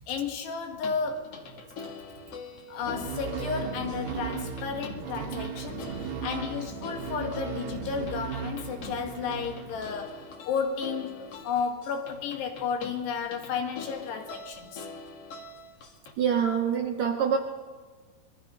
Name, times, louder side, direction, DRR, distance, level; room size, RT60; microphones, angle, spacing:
voice 1, 0.1-1.4 2.7-14.9, left 6 dB, 85° left, 4 dB, 4.1 m, -33 dB
sound 1, 0.7-16.1, left 4 dB, 45° left, 2.3 m, -44 dB
sound 2, 2.8-10.2, right 6 dB, 85° right, 3.6 m, -36 dB
voice 2, 16.2-17.4, right 7 dB, 65° right, 3 dB, 1.9 m, -25 dB
25.0 x 22.5 x 5.5 m, 1.5 s
omnidirectional pair, 4.7 m